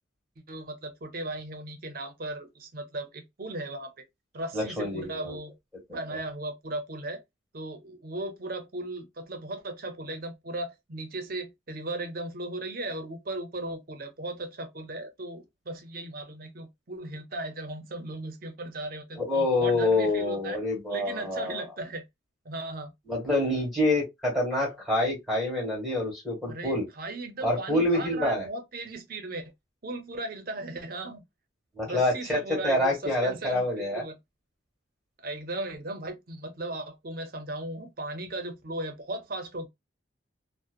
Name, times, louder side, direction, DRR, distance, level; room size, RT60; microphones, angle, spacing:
voice 1, 0.4-4.1 4.3-5.5 5.9-7.2 7.5-20.6 20.9-22.0 22.4-22.9 26.5-29.5 29.8-31.2 31.8-34.2 35.2-39.7, right 2 dB, 50° right, 0.6 m, -37 dB
voice 2, 4.5-5.4 19.2-21.6 23.1-26.8 27.4-28.5 31.7-34.0, left 2 dB, ahead, 1.5 m, -27 dB
2.8 x 2.1 x 2.3 m
head